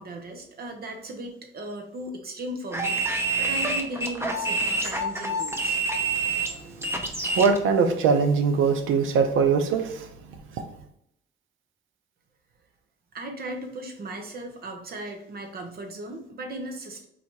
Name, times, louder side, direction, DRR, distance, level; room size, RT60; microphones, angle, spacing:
voice 1, 0.0-3.0 3.4-5.8 13.1-17.0, right 2 dB, 50° right, 4 dB, 1.1 m, -37 dB
sound 1, 2.7-7.6, right 2 dB, 15° right, 0.8 m, -27 dB
voice 2, 7.4-10.1, right 5 dB, 85° right, 7 dB, 0.7 m, -22 dB
4.1 x 2.8 x 4.6 m, 0.76 s
cardioid pair, 90°, 20 cm